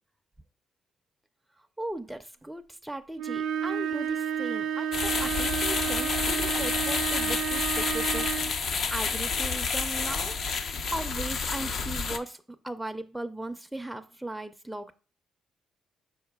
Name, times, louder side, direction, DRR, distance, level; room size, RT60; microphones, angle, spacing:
voice 1, 1.6-10.4 10.9-14.9, right 1 dB, 5° right, 0.4 m, -38 dB
sound 1, 3.2-8.6, right 8 dB, 90° right, 0.4 m, -31 dB
Lancaster Gate - Aggressive water fountain, 4.9-12.2, left 5 dB, 55° left, 0.4 m, -29 dB
5.5 x 4.4 x 2.2 m
cardioid pair, 90°, 0 cm